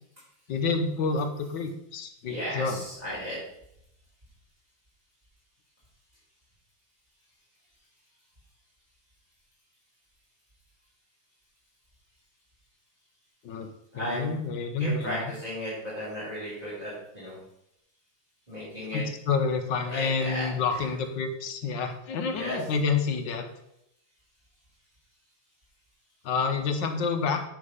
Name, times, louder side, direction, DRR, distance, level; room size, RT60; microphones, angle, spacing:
voice 1, 0.5-2.8 13.4-13.7 13.9-15.2 18.9-23.5 26.2-27.4, left 4 dB, 70° left, 6 dB, 1.6 m, -28 dB
voice 2, 2.3-3.4 13.9-14.3 14.8-17.4 18.5-19.0 19.9-20.8 22.3-22.6, equal, 20° right, -8 dB, 3.6 m, -35 dB
9.8 x 4.6 x 5.5 m, 0.80 s
omnidirectional pair, 2.1 m